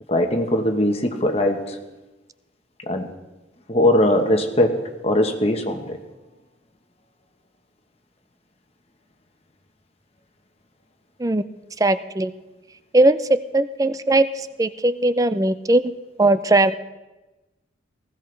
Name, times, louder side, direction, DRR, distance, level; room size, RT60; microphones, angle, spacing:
voice 1, 0.1-1.8 2.9-3.1 3.7-6.0, left 1 dB, 30° left, 5 dB, 1.1 m, -20 dB
voice 2, 11.8-12.3 12.9-15.8 16.2-16.7, right 2 dB, 20° right, 13 dB, 0.5 m, -19 dB
19.5 x 15.0 x 3.3 m, 1.1 s
head